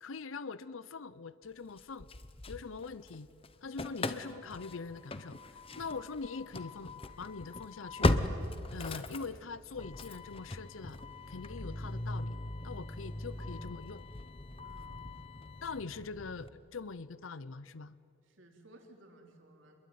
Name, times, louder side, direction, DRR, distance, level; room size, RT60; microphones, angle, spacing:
voice 1, 0.0-2.1 2.5-3.3 3.6-8.2 8.7-11.0 11.3-12.4 12.6-14.0 15.6-18.0, left 4 dB, 80° left, 17 dB, 0.6 m, -43 dB
Engine starting / Slam, 1.8-3.2 3.4-16.5, left 2 dB, 30° left, 1.0 m, -38 dB
voice 2, 13.3-13.6 14.6-15.0 18.2-19.8, right 1 dB, 70° right, 2 dB, 4.0 m, -58 dB
28.0 x 22.0 x 9.3 m, 2.5 s
head